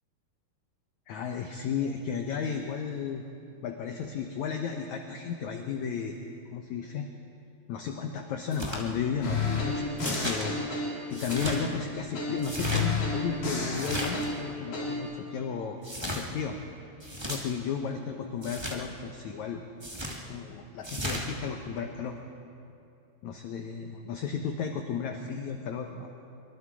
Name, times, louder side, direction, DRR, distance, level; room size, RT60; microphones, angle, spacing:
voice 1, 1.1-3.2 3.6-6.2 6.5-7.1 7.7-10.6 11.1-16.6 17.3-19.6 20.2-22.2 23.2-26.1, left 6 dB, 75° left, 4 dB, 1.7 m, -34 dB
sound 1, 8.5-8.8 10.0-10.4 11.1-11.6 12.4-12.8 13.7-14.3 15.8-16.2 17.0-17.4 18.4-18.8 19.8-20.2 20.8-21.2, equal, 20° right, 0.7 m, -35 dB
sound 2, 9.2-11.8 12.2-15.0, left 3 dB, 60° left, 6.3 m, -31 dB
24.5 x 24.0 x 4.9 m, 2.6 s
omnidirectional pair, 4.7 m